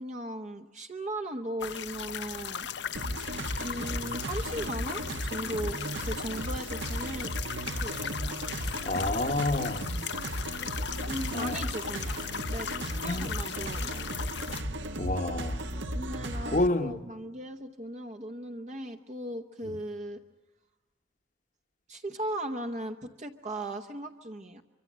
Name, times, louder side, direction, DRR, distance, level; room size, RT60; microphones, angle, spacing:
voice 1, 0.0-2.7 3.6-7.3 7.7-8.0 11.1-14.2 15.9-20.2 21.9-24.6, right 1 dB, 35° right, 0.9 m, -37 dB
sound 1, 1.6-14.6, left 8 dB, 65° left, 0.8 m, -38 dB
sound 2, 2.9-16.7, right 1 dB, 75° right, 1.5 m, -35 dB
voice 2, 8.9-9.9 11.3-11.6 13.0-13.3 15.0-15.6 16.5-16.9, left 2 dB, 40° left, 1.1 m, -29 dB
25.0 x 24.5 x 7.5 m
head